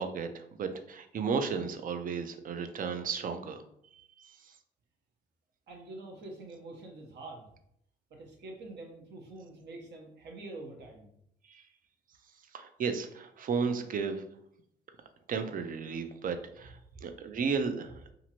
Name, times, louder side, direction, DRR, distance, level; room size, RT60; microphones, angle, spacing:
voice 1, 0.0-3.6 3.9-4.5 11.5-11.6 12.5-14.2 15.3-18.0, right 5 dB, 45° right, 8 dB, 0.4 m, -34 dB
voice 2, 5.7-7.5 8.1-11.1 16.6-16.7 17.9-18.0, right 2 dB, 60° right, 1 dB, 0.9 m, -46 dB
2.9 x 2.5 x 2.8 m, 0.73 s
cardioid pair, 90°, 20 cm